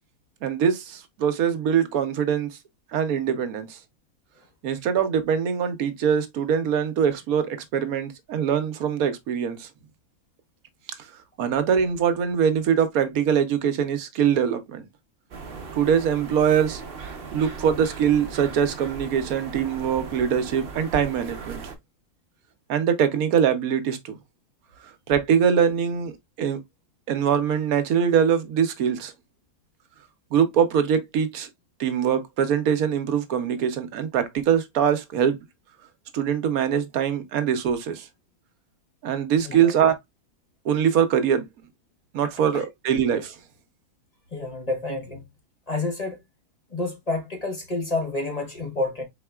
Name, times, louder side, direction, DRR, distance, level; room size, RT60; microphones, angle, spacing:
voice 1, 0.4-2.5 2.9-3.8 4.6-9.7 11.4-14.9 15.7-16.8 17.3-21.6 22.7-24.2 25.1-26.6 27.1-29.1 30.3-31.5 31.8-35.4 36.1-38.1 39.0-39.9 40.6-41.4 42.1-43.4, right 8 dB, 80° right, 1.2 m, -23 dB
sound 1, 15.3-21.8, right 5 dB, 50° right, 0.9 m, -38 dB
voice 2, 39.4-39.7 42.5-42.6 44.3-45.2 45.7-46.2 46.7-49.0, left 2 dB, 30° left, 1.0 m, -29 dB
4.2 x 4.0 x 2.2 m
omnidirectional pair, 1.5 m